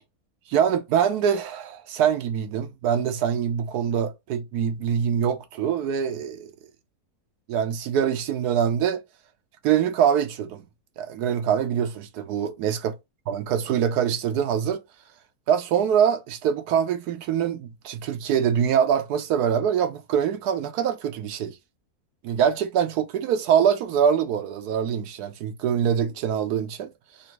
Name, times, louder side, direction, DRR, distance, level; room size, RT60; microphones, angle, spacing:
voice 1, 0.5-6.5 7.5-9.0 9.6-10.6 11.0-12.9 13.3-14.8 15.5-21.6 22.2-26.9, right 8 dB, 80° right, 1.2 m, -24 dB
4.1 x 2.5 x 4.4 m
omnidirectional pair, 1.6 m